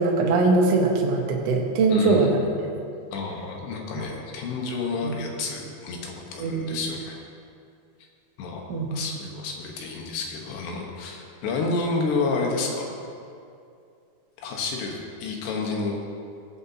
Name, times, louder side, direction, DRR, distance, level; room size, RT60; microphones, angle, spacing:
voice 1, 0.0-2.4 4.0-4.1 5.0-5.2 6.4-6.8 8.7-9.0, right 3 dB, 85° right, -1 dB, 1.3 m, -22 dB
voice 2, 1.9-2.3 3.1-7.2 8.4-12.9 14.4-16.0, left 3 dB, 90° left, 0 dB, 3.4 m, -30 dB
18.5 x 7.9 x 2.8 m, 2.4 s
omnidirectional pair, 4.7 m